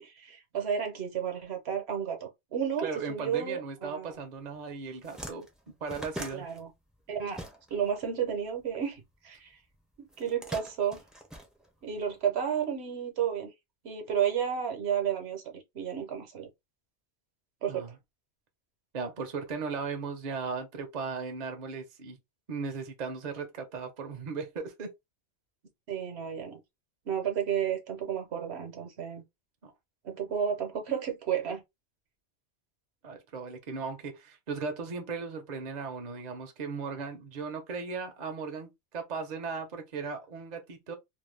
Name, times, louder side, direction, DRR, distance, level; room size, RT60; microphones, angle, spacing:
voice 1, 0.0-4.1 6.3-6.7 7.1-7.4 7.7-9.5 10.0-11.0 11.8-13.5 13.8-16.5 17.6-17.9 25.9-26.6 27.1-29.2 30.0-31.6, right 8 dB, 70° right, 1.1 m, -32 dB
voice 2, 2.8-5.5 5.8-6.5 17.7-17.9 18.9-22.2 22.5-24.9 29.6-29.7 33.0-40.9, right 5 dB, 45° right, 0.7 m, -37 dB
sound 1, 4.4-4.6 4.8-8.0 8.3-9.4 10.1-12.1, right 1 dB, ahead, 0.5 m, -43 dB
2.6 x 2.2 x 3.2 m
omnidirectional pair, 1.2 m